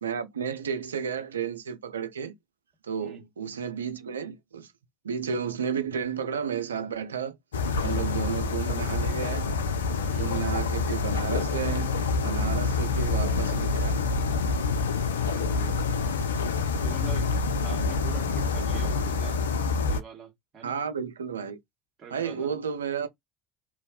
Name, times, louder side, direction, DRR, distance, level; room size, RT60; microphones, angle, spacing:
voice 1, 0.0-2.3 2.8-4.7 5.0-7.4 7.8-9.5 10.2-12.0 12.2-14.1 20.6-21.6 22.1-23.1, right 7 dB, 85° right, 0.4 m, -32 dB
sound 1, 7.5-20.0, left 4 dB, 80° left, 0.3 m, -27 dB
voice 2, 15.3-15.8 16.8-17.3 17.6-19.4 19.9-20.8 22.0-22.5, right 6 dB, 40° right, 1.3 m, -44 dB
2.6 x 2.2 x 2.6 m
hypercardioid pair, 65°, 0 cm